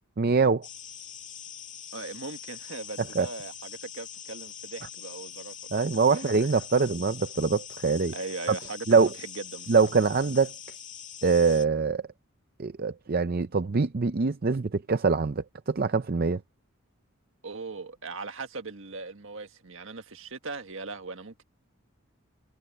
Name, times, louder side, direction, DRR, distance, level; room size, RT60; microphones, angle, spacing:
voice 1, 0.2-0.7 3.2-3.3 5.7-8.1 8.9-9.1 9.7-10.5 11.2-12.0 12.6-16.4, right 4 dB, 45° right, 0.5 m, -24 dB
sound 1, 0.6-11.7, left 9 dB, 35° left, 2.2 m, -43 dB
voice 2, 1.9-6.4 8.1-9.7 17.4-21.4, right 3 dB, 65° right, 1.6 m, -39 dB
head